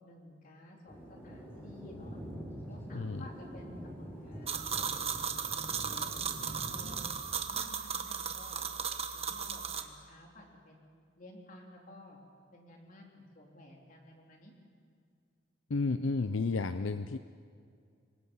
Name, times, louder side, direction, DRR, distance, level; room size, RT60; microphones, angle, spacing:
voice 1, 0.0-2.2 2.7-5.0 5.7-7.0 7.3-8.7 9.1-10.8 11.2-12.2 12.5-14.5, left 1 dB, 45° left, 0 dB, 3.8 m, -53 dB
Thunder, 0.9-7.2, equal, 15° left, 5.1 m, -45 dB
voice 2, 2.9-3.3 15.7-17.2, left 3 dB, 80° left, 10 dB, 0.6 m, -32 dB
sound 1, 4.5-9.8, right 7 dB, 30° right, 1.2 m, -36 dB
26.5 x 23.5 x 5.6 m, 2.2 s
head